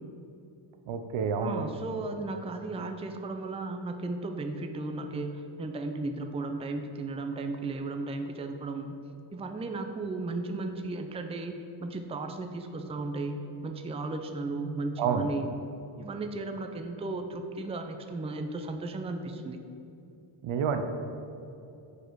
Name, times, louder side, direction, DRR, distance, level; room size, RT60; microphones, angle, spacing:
voice 1, 0.9-1.7 15.0-15.3 20.4-20.8, right 6 dB, 75° right, 7 dB, 0.7 m, -28 dB
voice 2, 1.4-8.9 9.3-11.5 11.8-13.4 13.6-15.5 16.0-19.6, right 3 dB, 15° right, 5 dB, 0.4 m, -35 dB
6.5 x 4.9 x 4.6 m, 2.8 s
cardioid pair, 80°, 49 cm